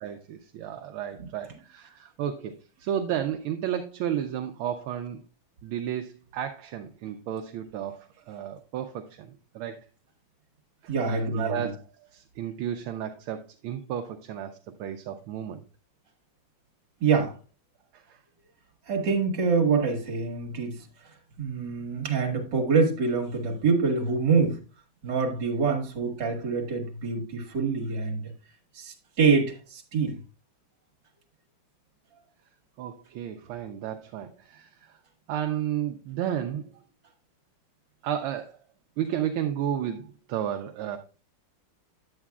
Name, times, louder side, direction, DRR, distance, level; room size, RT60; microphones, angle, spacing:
voice 1, 0.0-5.2 5.6-9.8 10.8-15.6 17.9-18.2 32.8-35.0 35.3-36.7 38.0-38.6 39.0-41.0, right 10 dB, 75° right, 1.4 m, -33 dB
voice 2, 10.9-11.7 17.0-17.3 18.9-20.8 21.4-24.6 25.0-28.3 28.8-30.2, right 5 dB, 55° right, 2.1 m, -25 dB
9.8 x 8.1 x 2.3 m
omnidirectional pair, 2.4 m